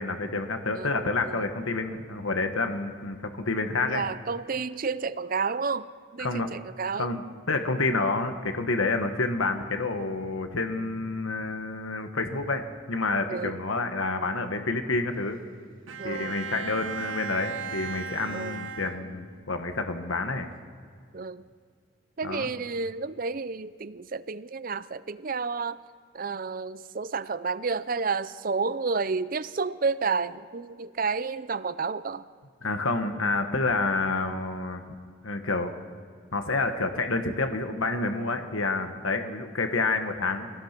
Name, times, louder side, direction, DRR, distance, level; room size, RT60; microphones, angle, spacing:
voice 1, 0.0-4.0 6.2-6.5 7.0-15.4 16.0-20.5 22.2-22.5 32.6-34.8 35.2-35.7 36.3-40.5, left 3 dB, 80° left, 6 dB, 1.4 m, -28 dB
voice 2, 0.7-1.5 3.8-7.2 13.3-13.6 16.0-16.4 18.3-18.6 21.1-21.4 22.2-25.8 26.1-32.2, right 4 dB, 40° right, 16 dB, 0.5 m, -31 dB
Bowed string instrument, 15.9-19.5, right 5 dB, 70° right, 1.4 m, -37 dB
25.5 x 18.0 x 6.0 m, 2.1 s
head